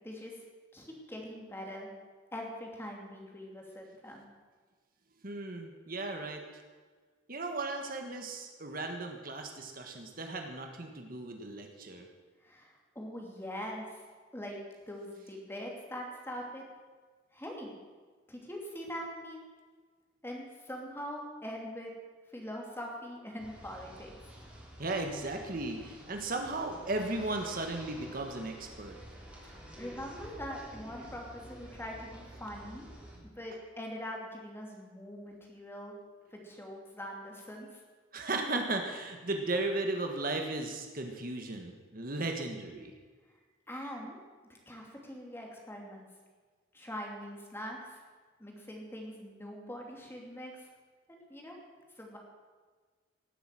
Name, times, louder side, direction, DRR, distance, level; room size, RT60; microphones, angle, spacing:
voice 1, 0.0-0.4 0.7-1.9 2.3-4.2 12.4-14.0 14.3-14.6 14.9-16.6 17.3-17.7 18.3-19.5 20.2-21.9 22.3-24.1 29.4-32.9 33.2-35.9 36.3-37.8 43.7-44.2 44.5-46.1 46.7-48.0 48.4-50.6 51.1-51.6 52.0-52.2, equal, 10° left, 0 dB, 2.7 m, -43 dB
voice 2, 5.2-6.4 7.3-12.1 24.8-29.0 38.1-42.9, right 2 dB, 50° right, 3 dB, 1.5 m, -36 dB
sound 1, 23.4-33.2, equal, 5° right, 3.5 m, -50 dB
18.0 x 8.0 x 7.6 m, 1.4 s
head